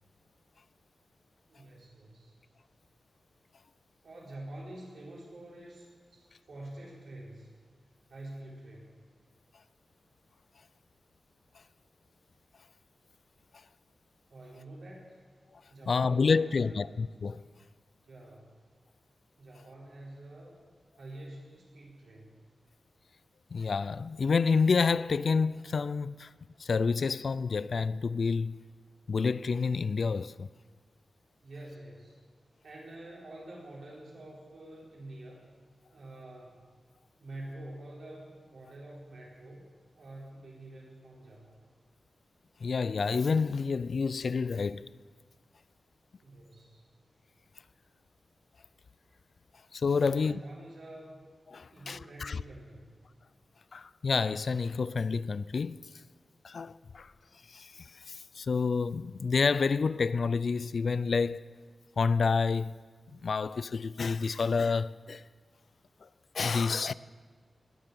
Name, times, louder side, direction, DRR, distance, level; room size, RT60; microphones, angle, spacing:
voice 1, 1.5-2.3 4.0-7.5 8.1-8.9 14.3-15.1 15.7-16.9 18.1-18.5 19.4-20.5 21.0-22.4 31.4-32.2 32.6-35.5 35.9-36.7 37.2-39.7 40.0-41.6 46.2-46.8 50.0-51.2 51.7-53.0, right 1 dB, 80° right, 4.2 m, -47 dB
voice 2, 15.9-17.4 23.5-26.3 26.6-28.6 29.1-30.5 42.6-44.8 49.7-50.4 51.5-52.4 53.7-55.8 56.4-57.1 57.5-61.4 62.0-62.7 63.1-65.2 66.0-66.1 66.3-66.9, left 5 dB, 55° left, 0.3 m, -29 dB
20.5 x 7.6 x 6.8 m
wide cardioid pair, 160°, 0 cm